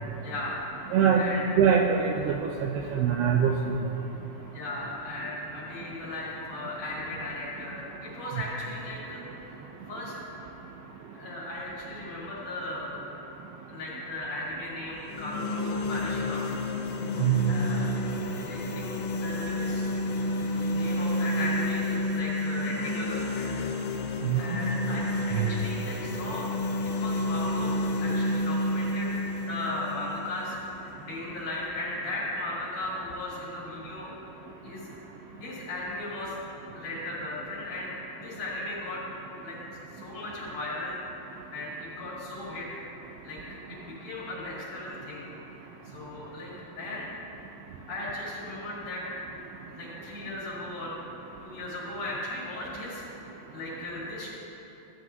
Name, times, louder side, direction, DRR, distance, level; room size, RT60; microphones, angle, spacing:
voice 1, 0.2-0.6 1.2-1.4 4.5-9.6 9.9-10.1 10.4-10.5 11.1-13.0 13.7-16.5 17.1-17.9 18.4-19.9 20.7-23.5 24.4-26.5 26.9-29.1 29.5-34.1 34.6-34.8 35.4-36.4 36.7-37.9 38.2-39.0 39.4-39.6 39.9-41.0 41.5-42.7 43.2-45.3 45.6-46.5 46.8-47.1 47.9-49.0 49.7-51.0 51.4-53.0 53.5-54.3, left 2 dB, 50° left, -7 dB, 3.4 m, -36 dB
voice 2, 0.9-1.2 1.6-3.8 17.2-17.5 24.2-24.4 25.4-25.5, right 8 dB, 80° right, 1 dB, 2.4 m, -23 dB
sound 1, 15.0-31.0, left 1 dB, 80° left, 2.9 m, -30 dB
15.0 x 9.8 x 2.7 m, 3.0 s
omnidirectional pair, 5.0 m